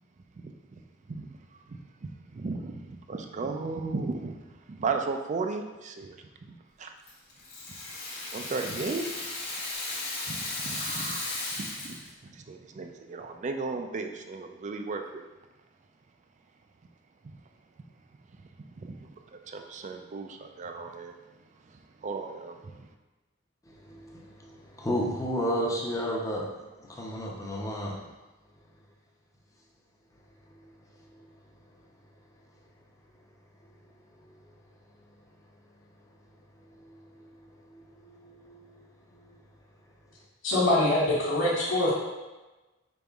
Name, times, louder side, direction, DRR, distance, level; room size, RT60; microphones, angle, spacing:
voice 1, 2.3-4.4 4.7-6.2 6.8-6.9 8.3-9.1 10.3-15.2 17.2-17.4 18.8-19.1 19.5-21.1 22.0-22.9, right 4 dB, 40° right, 5 dB, 0.4 m, -35 dB
Rattle (instrument), 7.1-12.1, left 2 dB, 55° left, 1.2 m, -35 dB
voice 2, 23.8-26.5 26.8-27.9 38.0-38.6, equal, 15° left, -2 dB, 0.7 m, -32 dB
voice 3, 40.4-41.9, left 1 dB, 80° left, -10 dB, 1.1 m, -24 dB
5.2 x 4.1 x 2.3 m, 1.1 s
head